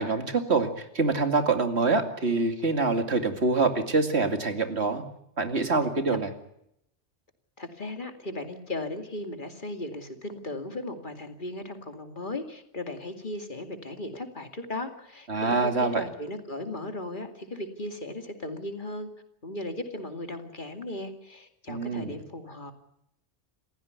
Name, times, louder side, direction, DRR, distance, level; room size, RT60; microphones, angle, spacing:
voice 1, 0.0-5.0 5.4-6.3 15.3-16.0 21.7-22.2, right 3 dB, 70° right, 7 dB, 2.7 m, -25 dB
voice 2, 7.6-19.1 19.4-22.7, left 1 dB, 45° left, 6 dB, 2.6 m, -37 dB
28.5 x 15.5 x 9.6 m, 0.79 s
omnidirectional pair, 1.1 m